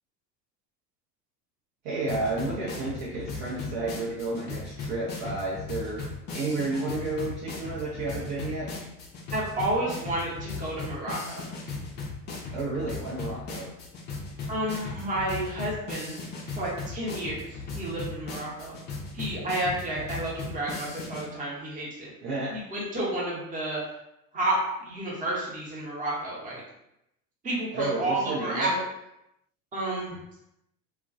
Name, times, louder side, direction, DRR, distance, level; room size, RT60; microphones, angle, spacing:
voice 1, 1.8-6.0 6.3-8.7 12.5-13.7 22.2-22.5 27.7-28.8, right 2 dB, 50° right, -6 dB, 0.7 m, -31 dB
sound 1, 2.1-21.3, left 3 dB, 25° left, 0.4 m, -37 dB
voice 2, 9.3-11.4 14.5-16.1 16.5-17.5 17.7-18.7 19.1-22.1 22.5-23.8 24.3-24.6 24.8-26.6 27.4-28.7 29.7-30.2, right 1 dB, 15° right, -5 dB, 0.8 m, -31 dB
2.2 x 2.2 x 2.6 m, 0.83 s
hypercardioid pair, 80°, 49 cm